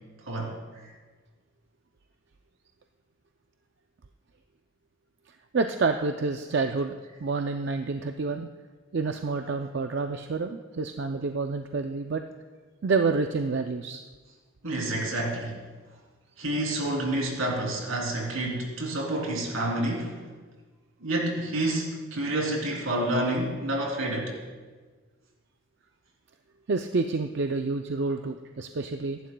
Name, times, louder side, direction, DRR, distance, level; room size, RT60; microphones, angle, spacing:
voice 1, 0.3-0.6 14.6-15.6 16.4-20.2 21.0-24.3, right 1 dB, 80° right, -1 dB, 3.2 m, -29 dB
voice 2, 5.5-6.9 7.2-8.5 8.9-12.2 12.8-14.0 26.7-29.2, right 4 dB, 55° right, 6 dB, 0.4 m, -28 dB
24.0 x 11.5 x 2.3 m, 1.4 s
head